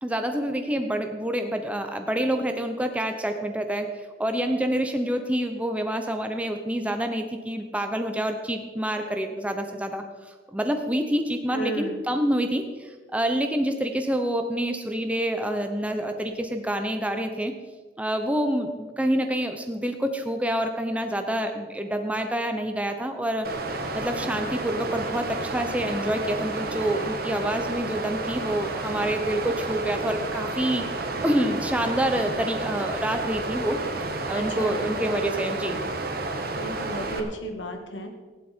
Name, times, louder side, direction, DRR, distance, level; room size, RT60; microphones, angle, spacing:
voice 1, 0.0-10.0 10.5-17.5 18.0-23.5 23.9-30.8 31.2-33.8 34.3-35.8, right 1 dB, 5° right, 5 dB, 0.8 m, -27 dB
voice 2, 11.5-12.0 34.4-34.9 36.5-38.1, right 1 dB, 85° left, 4 dB, 1.9 m, -33 dB
Water, 23.4-37.2, right 2 dB, 55° right, 1.5 m, -31 dB
16.0 x 11.0 x 4.5 m, 1.5 s
head